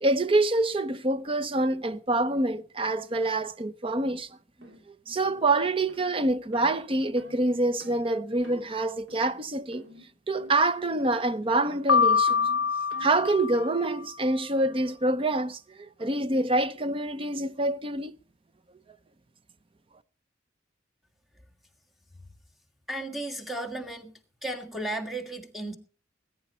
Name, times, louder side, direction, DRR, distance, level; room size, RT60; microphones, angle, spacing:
voice 1, 0.0-4.3 4.6-4.7 5.1-9.8 10.3-12.4 13.0-15.6 16.0-18.2, right 2 dB, 30° right, 0.7 m, -26 dB
sound 1, 4.0-4.2 4.6-4.8 5.2-5.5 5.9-6.1 6.5-6.8 7.2-7.4 7.8-8.1 8.4-8.7 9.1-9.4 9.7-10.1 10.4-10.7 11.0-11.3 11.6-14.0, right 1 dB, 85° right, 3.1 m, -48 dB
Piano, 11.9-14.0, left 6 dB, 85° left, 0.6 m, -25 dB
voice 2, 22.9-24.1 24.4-25.7, right 1 dB, ahead, 1.7 m, -34 dB
20.5 x 9.7 x 4.4 m
head